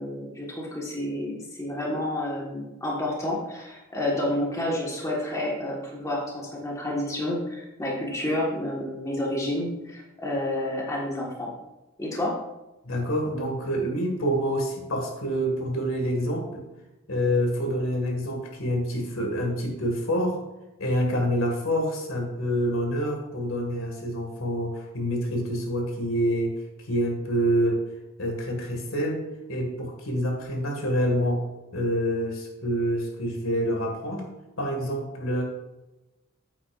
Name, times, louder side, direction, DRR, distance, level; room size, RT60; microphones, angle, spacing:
voice 1, 0.0-11.5 12.0-12.3, left 1 dB, 15° left, -3 dB, 1.5 m, -30 dB
voice 2, 12.8-16.6 17.1-20.4 20.8-26.5 26.9-27.8 28.2-29.2 29.5-31.4 31.7-34.2 34.6-35.4, equal, 80° left, 1 dB, 2.0 m, -27 dB
9.5 x 8.5 x 2.5 m, 1.0 s
head